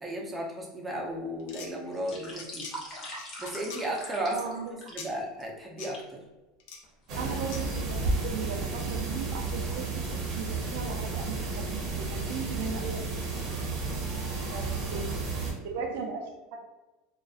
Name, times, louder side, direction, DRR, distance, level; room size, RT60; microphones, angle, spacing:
voice 1, 0.0-2.7 3.4-4.5 4.9-6.2, right 1 dB, 15° right, -2 dB, 0.5 m, -34 dB
sound 1, 1.4-1.7 2.1-2.7 3.1-3.8 5.0-5.1 5.8-5.9 6.6-6.8 7.5-7.6, left 5 dB, 75° left, 0.4 m, -42 dB
sound 2, 1.8-5.4 5.9-6.1 6.8-7.6 8.1-11.0 11.3-11.4 11.9-12.0 12.4-12.7 13.5-14.0 14.5-14.8 15.0-15.7 16.0-16.1, equal, 35° left, 0.7 m, -45 dB
voice 2, 4.3-4.9 7.1-13.7 14.0-14.2 14.5-15.3 15.6-16.7, right 5 dB, 75° right, 4 dB, 0.3 m, -38 dB
sound 3, 7.1-15.5, right 3 dB, 50° right, 0.7 m, -32 dB
2.4 x 2.1 x 2.4 m, 1.1 s
supercardioid pair, 120°, 0 cm